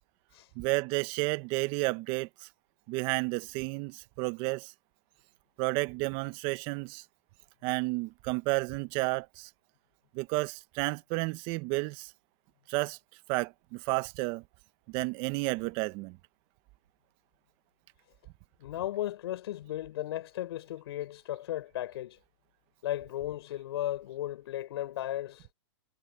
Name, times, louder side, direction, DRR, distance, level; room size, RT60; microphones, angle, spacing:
voice 1, 0.5-2.5 2.9-4.7 5.6-7.0 7.6-9.5 10.1-12.1 12.7-13.0 13.3-14.4 14.9-16.2, right 24 dB, 35° right, 1.2 m, -31 dB
voice 2, 18.6-22.2 22.8-25.5, left 13 dB, 60° left, 7.6 m, -35 dB
hypercardioid pair, 140°, 15 cm